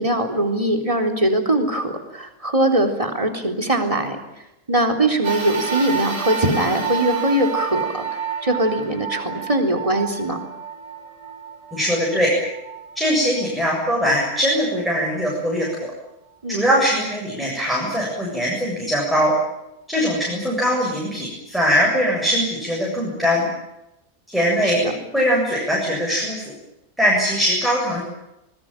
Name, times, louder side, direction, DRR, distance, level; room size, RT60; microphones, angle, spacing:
voice 1, 0.0-4.2 4.7-8.0 8.4-10.4 16.4-16.7 24.6-24.9, right 1 dB, 20° right, 4 dB, 3.9 m, -21 dB
sound 1, 5.2-13.8 14.5-14.6 15.7-15.8, right 7 dB, 85° right, 5.2 m, -29 dB
voice 2, 11.7-12.3 13.0-15.7 16.5-19.3 19.9-23.5 24.3-24.8 25.1-26.5 27.0-28.0, equal, ahead, -3 dB, 7.6 m, -21 dB
26.5 x 21.0 x 9.1 m, 0.88 s
omnidirectional pair, 1.7 m